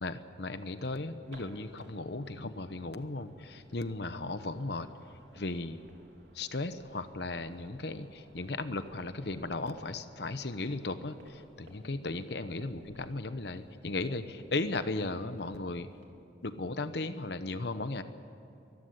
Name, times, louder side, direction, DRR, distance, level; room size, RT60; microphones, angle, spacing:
voice 1, 0.0-4.9 5.3-5.8 6.3-15.9 16.4-18.0, left 2 dB, 60° left, 11 dB, 1.0 m, -36 dB
sound 1, 0.6-16.1, right 1 dB, 70° right, 3.3 m, -59 dB
23.0 x 14.5 x 9.6 m, 2.8 s
head